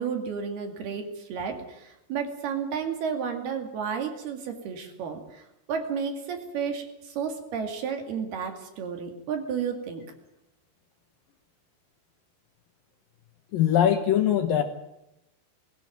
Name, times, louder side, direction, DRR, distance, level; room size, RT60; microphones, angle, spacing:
voice 1, 0.0-5.4 5.7-10.0, right 6 dB, 65° right, 5 dB, 4.2 m, -32 dB
voice 2, 13.5-14.6, left 10 dB, 70° left, 7 dB, 2.4 m, -21 dB
20.5 x 16.5 x 9.3 m, 0.87 s
omnidirectional pair, 5.1 m